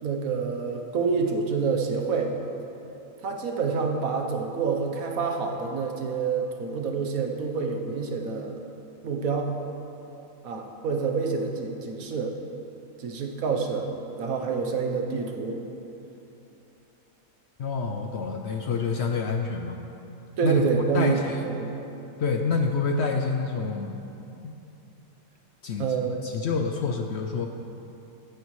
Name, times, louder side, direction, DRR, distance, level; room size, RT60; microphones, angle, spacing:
voice 1, 0.0-2.3 3.2-8.5 9.0-9.5 10.4-12.4 13.0-13.9 14.2-15.6 20.4-21.7 25.8-26.1, right 5 dB, 70° right, 2 dB, 1.3 m, -27 dB
voice 2, 17.6-19.8 20.4-20.6 20.9-21.4 22.2-24.0 24.4-24.5 25.6-25.9 26.2-27.5, left 4 dB, 65° left, 4 dB, 0.7 m, -27 dB
14.0 x 9.4 x 3.2 m, 2.9 s
omnidirectional pair, 1.5 m